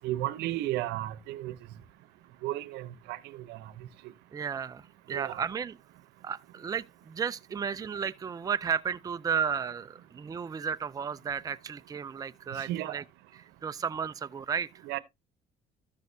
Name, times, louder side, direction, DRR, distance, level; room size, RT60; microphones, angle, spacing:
voice 1, 0.0-1.5 2.4-3.2 3.5-3.6 5.1-5.4 12.5-13.0 14.8-15.0, right 15 dB, 90° right, 0.8 m, -33 dB
voice 2, 4.3-5.8 6.2-13.0 13.6-14.7, right 7 dB, 20° right, 0.4 m, -33 dB
13.0 x 6.3 x 2.7 m
cardioid pair, 110°, 17 cm